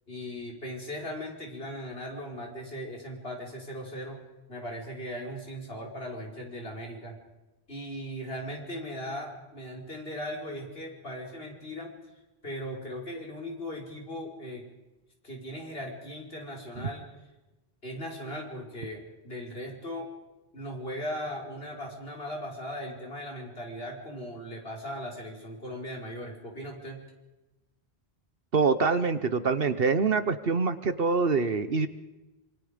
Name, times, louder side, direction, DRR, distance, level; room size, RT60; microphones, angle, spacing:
voice 1, 0.1-4.2 4.5-7.2 7.7-11.9 12.4-14.6 15.2-17.1 17.8-20.1 20.5-27.0, equal, 65° left, 0 dB, 5.4 m, -38 dB
voice 2, 28.5-31.9, right 4 dB, 60° right, 12 dB, 1.3 m, -25 dB
26.5 x 24.5 x 5.2 m, 1.0 s
omnidirectional pair, 1.1 m